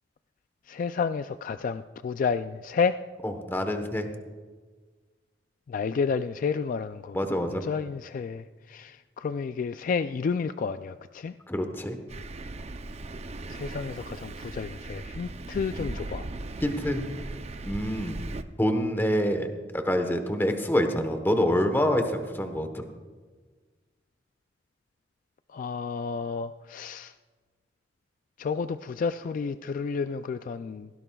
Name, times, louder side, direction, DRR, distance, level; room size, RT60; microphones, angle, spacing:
voice 1, 0.7-3.0 5.7-7.2 7.6-11.3 13.5-16.3 25.5-27.1 28.4-30.9, left 5 dB, 45° left, 11 dB, 0.3 m, -31 dB
voice 2, 3.2-4.1 7.1-7.6 11.5-12.0 15.8-15.9 16.6-17.0 17.6-18.2 18.6-19.5 19.7-22.8, equal, 10° left, 6 dB, 1.0 m, -26 dB
Thunder, 12.1-18.4, right 2 dB, 35° right, 0.5 m, -38 dB
18.0 x 16.0 x 2.3 m, 1.4 s
head